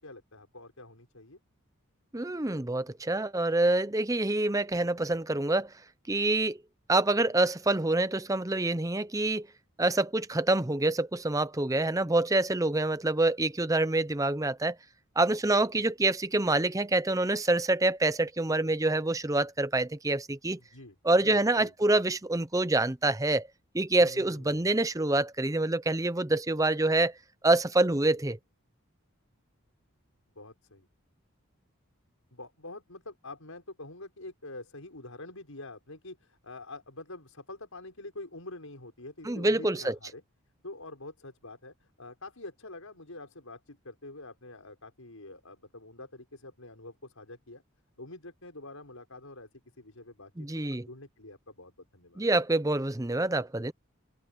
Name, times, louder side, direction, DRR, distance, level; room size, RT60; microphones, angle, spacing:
voice 1, 0.0-1.4 20.6-21.0 21.2-21.7 24.0-24.8 30.3-30.9 32.3-40.2 40.6-47.6 48.0-49.5 49.8-52.2, left 2 dB, 85° left, 6.2 m, -46 dB
voice 2, 2.1-5.7 6.1-6.6 6.9-9.5 9.8-14.8 15.2-20.6 21.0-23.5 23.7-27.1 27.4-28.4 39.2-40.0 50.4-50.9 52.2-53.7, right 2 dB, 15° right, 0.7 m, -26 dB
open air
head